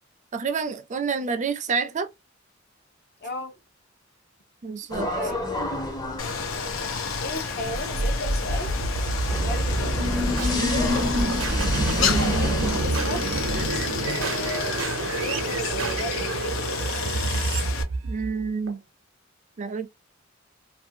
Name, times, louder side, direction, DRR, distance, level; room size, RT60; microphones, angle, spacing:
voice 1, 0.3-2.1 4.6-5.1 10.5-10.9 12.0-12.3 18.0-18.8 19.6-19.9, right 5 dB, 35° right, 0.4 m, -28 dB
voice 2, 3.2-3.5 5.1-5.4 7.2-8.8 9.4-10.0 10.7-11.3 12.0-13.2 14.0-16.8, left 1 dB, 55° left, 0.8 m, -35 dB
sound 1, 4.9-12.8, left 1 dB, 20° left, 0.7 m, -31 dB
Stream, 6.2-17.8, left 6 dB, 85° left, 0.6 m, -31 dB
sound 2, 7.7-18.7, right 2 dB, 85° right, 0.6 m, -27 dB
2.6 x 2.3 x 2.6 m
head